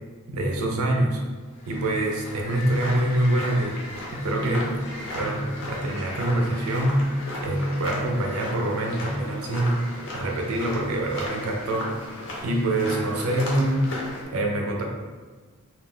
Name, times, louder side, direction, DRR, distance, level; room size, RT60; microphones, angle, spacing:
voice 1, 0.3-1.2 1.7-3.8 4.1-4.8 5.1-7.0 7.4-9.8 10.1-11.9 12.4-13.9 14.3-14.8, right 1 dB, 70° right, 1 dB, 0.5 m, -25 dB
sound 1, 1.5-14.2, left 1 dB, 60° left, 0.7 m, -36 dB
2.3 x 2.2 x 3.5 m, 1.4 s
head